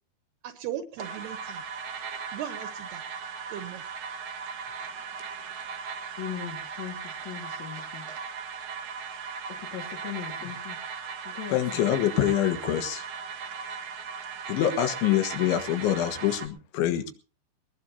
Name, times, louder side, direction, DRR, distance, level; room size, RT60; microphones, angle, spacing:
voice 1, 0.4-1.6 2.3-3.0 3.5-3.8, right 11 dB, 70° right, 9 dB, 2.8 m, -37 dB
sound 1, 1.0-16.5, right 6 dB, 85° right, 1.1 m, -38 dB
voice 2, 6.2-8.1 9.6-10.8 11.2-11.9, left 9 dB, 50° left, 0 dB, 2.4 m, -39 dB
voice 3, 11.5-13.1 14.5-17.1, left 11 dB, 90° left, 8 dB, 3.9 m, -25 dB
20.5 x 20.0 x 2.8 m, 0.36 s
omnidirectional pair, 5.2 m